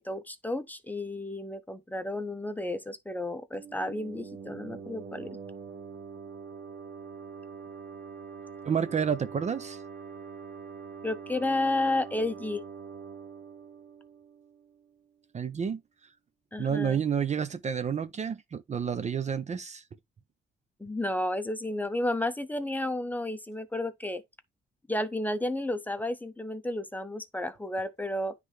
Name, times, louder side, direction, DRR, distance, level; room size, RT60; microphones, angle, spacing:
voice 1, 0.0-5.4 11.0-12.6 16.5-17.0 20.8-24.2 24.9-28.3, left 1 dB, 10° left, 0.7 m, -32 dB
sound 1, 3.5-15.0, right 6 dB, 75° right, 1.2 m, -44 dB
voice 2, 8.6-9.8 15.3-15.8 16.6-19.8, right 7 dB, 35° right, 0.6 m, -30 dB
9.7 x 3.3 x 3.2 m
cardioid pair, 90°, 20 cm